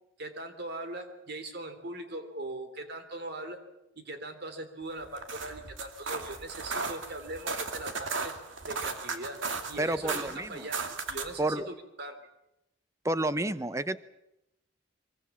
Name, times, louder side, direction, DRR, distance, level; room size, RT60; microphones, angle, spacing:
voice 1, 0.2-3.6 3.9-8.3 8.6-9.4 9.7-12.2, right 2 dB, 55° right, 8 dB, 3.2 m, -40 dB
sound 1, 5.0-11.4, right 4 dB, 75° right, 2.5 m, -36 dB
voice 2, 9.8-10.7 11.4-11.7 13.0-14.0, right 1 dB, 15° right, 13 dB, 0.8 m, -30 dB
24.0 x 23.5 x 7.4 m, 0.86 s
head